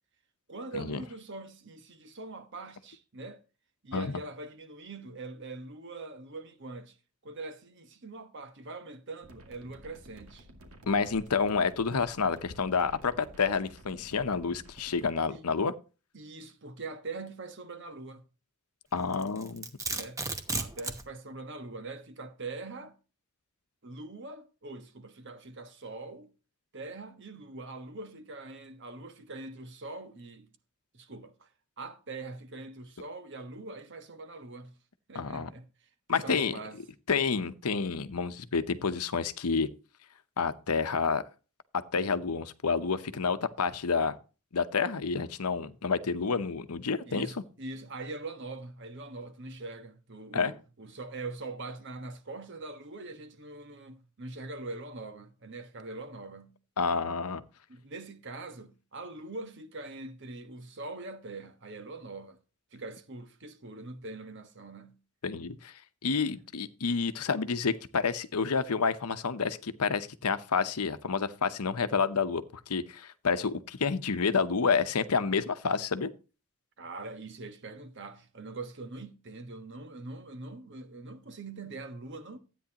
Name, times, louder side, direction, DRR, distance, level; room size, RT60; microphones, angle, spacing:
voice 1, 0.5-3.4 3.8-7.0 7.2-10.5 15.3-15.5 16.1-18.2 19.9-20.2 20.6-22.9 23.8-26.3 26.7-30.5 30.9-31.5 31.8-34.7 35.1-36.8 47.1-56.5 57.7-62.4 62.7-65.0 66.1-66.4 76.8-82.4, right 3 dB, 55° right, 1.3 m, -43 dB
sound 1, 9.2-15.1, equal, 75° right, 2.2 m, -52 dB
voice 2, 10.9-15.7 18.9-19.7 35.1-35.5 36.1-36.5 37.1-39.7 40.4-41.2 41.9-44.2 44.5-47.3 50.3-50.5 56.8-57.4 65.2-65.7 66.0-76.1, left 5 dB, 85° left, 0.8 m, -29 dB
Domestic sounds home sounds, 19.1-21.1, right 3 dB, 15° right, 0.9 m, -34 dB
13.0 x 9.2 x 2.9 m
head